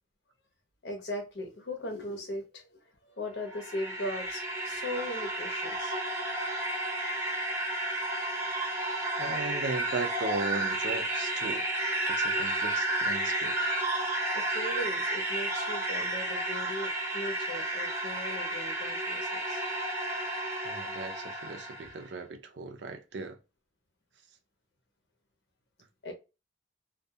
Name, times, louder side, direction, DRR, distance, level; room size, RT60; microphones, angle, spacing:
voice 1, 0.8-5.9 14.3-19.6 26.0-26.1, left 1 dB, 70° left, 0.7 m, -38 dB
sound 1, 3.3-22.0, right 1 dB, 15° right, 0.6 m, -32 dB
voice 2, 8.5-8.9 9.2-11.7 12.1-13.7 20.6-23.4, right 3 dB, 80° right, 0.5 m, -37 dB
2.3 x 2.3 x 2.7 m
head